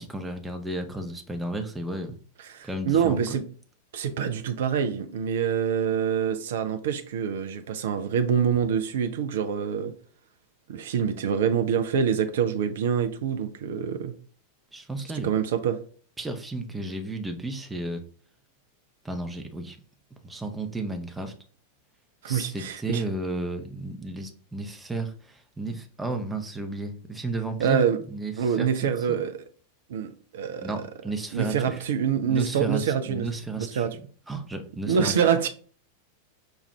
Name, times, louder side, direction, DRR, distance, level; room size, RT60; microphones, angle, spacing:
voice 1, 0.0-2.2 2.6-3.2 14.7-15.3 16.2-18.0 19.0-19.8 20.2-21.3 22.3-27.8 28.1-29.2 30.6-31.8 32.2-33.8 34.3-35.1, right 2 dB, 10° right, 0.6 m, -33 dB
voice 2, 2.4-3.4 3.9-9.9 10.7-14.2 15.2-15.8 22.2-23.0 27.6-28.0 28.4-29.4 29.9-30.9 31.3-33.3 33.6-34.0 34.9-35.5, right 7 dB, 60° right, 0.4 m, -26 dB
5.1 x 2.4 x 3.2 m
figure-of-eight pair, 90°, 0 cm